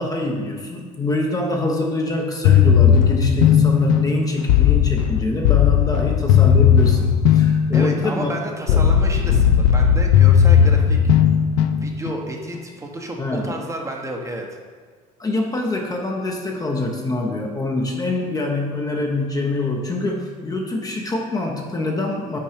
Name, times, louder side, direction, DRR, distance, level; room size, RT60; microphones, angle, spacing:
voice 1, 0.0-8.3 8.7-8.8 13.2-13.5 15.2-22.4, left 2 dB, 20° left, 1 dB, 0.7 m, -25 dB
sound 1, 2.4-12.2, left 8 dB, 80° left, 0.4 m, -16 dB
voice 2, 7.7-11.0 11.7-14.5, right 1 dB, 15° right, 1 dB, 0.9 m, -31 dB
5.7 x 4.4 x 5.0 m, 1.5 s
supercardioid pair, 100°, 18 cm